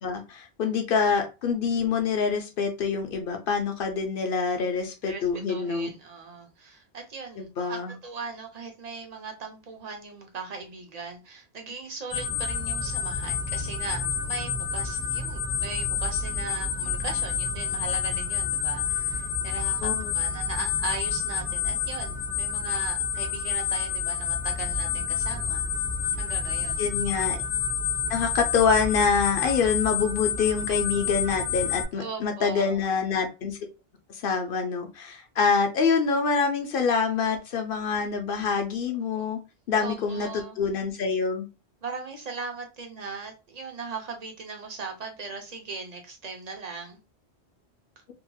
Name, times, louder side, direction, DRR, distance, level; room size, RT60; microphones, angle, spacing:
voice 1, 0.0-5.9 7.4-7.9 19.8-20.1 26.8-27.4 28.1-33.6 34.1-39.4 39.7-41.5, left 5 dB, 60° left, 0.7 m, -26 dB
voice 2, 5.0-25.7 26.1-26.8 31.9-32.8 39.2-39.3 39.8-40.6 41.8-47.0, right 4 dB, 45° right, 0.7 m, -39 dB
sound 1, 12.1-31.8, left 7 dB, 15° left, 0.7 m, -29 dB
2.8 x 2.8 x 2.2 m
omnidirectional pair, 1.1 m